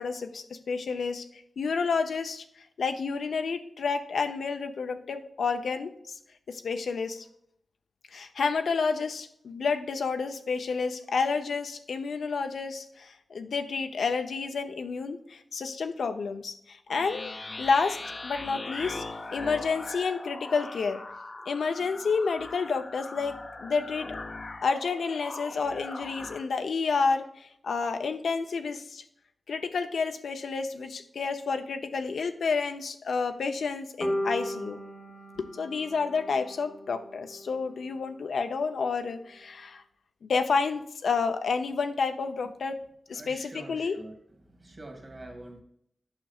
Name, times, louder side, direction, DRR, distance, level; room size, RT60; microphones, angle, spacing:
voice 1, 0.0-6.2 6.5-7.3 8.1-19.0 19.3-21.0 21.5-24.2 24.6-29.0 29.5-34.8 35.4-39.8 40.2-42.8 43.1-44.0, left 5 dB, 80° left, 7 dB, 0.7 m, -30 dB
sound 1, 17.0-26.4, left 2 dB, 40° left, 0.6 m, -40 dB
sound 2, 34.0-38.1, equal, 15° left, 0.9 m, -36 dB
voice 2, 43.1-44.1 44.4-45.6, right 1 dB, 35° right, 2 dB, 2.0 m, -45 dB
8.8 x 6.1 x 2.4 m, 0.72 s
wide cardioid pair, 105°, 0 cm